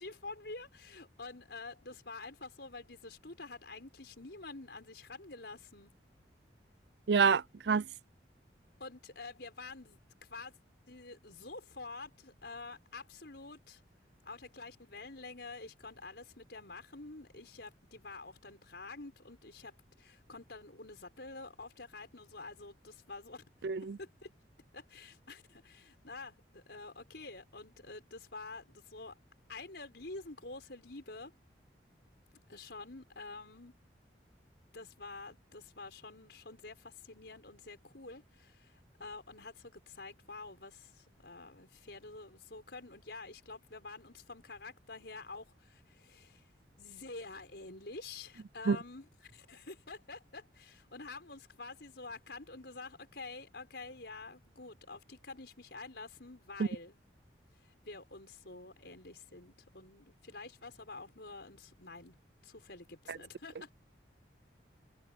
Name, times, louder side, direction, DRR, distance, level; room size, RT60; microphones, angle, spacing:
voice 1, 0.0-5.9 8.8-10.6 10.9-13.8 14.2-23.4 24.0-24.3 24.7-29.2 29.5-31.3 32.5-33.7 34.7-46.5 46.8-57.0 57.6-62.2 62.4-63.7, left 3 dB, 65° left, 6.1 m, -48 dB
voice 2, 7.1-7.8 23.6-24.0 48.7-48.8 56.6-56.7 63.1-63.2, right 5 dB, 65° right, 0.5 m, -27 dB
head